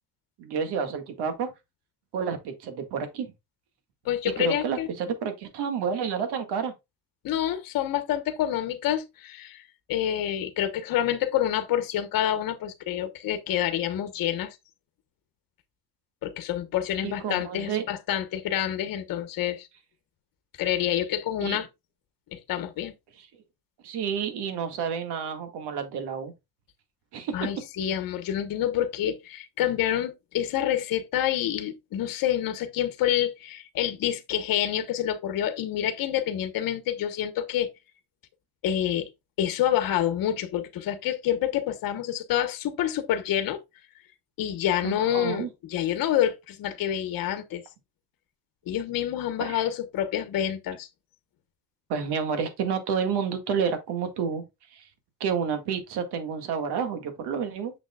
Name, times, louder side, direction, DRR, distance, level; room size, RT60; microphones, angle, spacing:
voice 1, 0.4-1.5 2.1-3.3 4.4-6.7 17.0-17.8 21.4-21.6 23.8-26.3 27.1-27.5 44.8-45.5 49.4-49.6 51.9-54.4 54.7-54.8 55.2-57.7, right 6 dB, 70° right, 1.9 m, -30 dB
voice 2, 4.0-4.9 7.2-9.6 9.9-14.6 16.2-19.7 20.6-21.7 22.3-22.9 27.3-37.7 38.6-39.1 39.4-43.6 44.4-47.6 48.7-50.9, left 11 dB, 55° left, 1.1 m, -27 dB
7.1 x 6.7 x 2.3 m
cardioid pair, 150°, 41 cm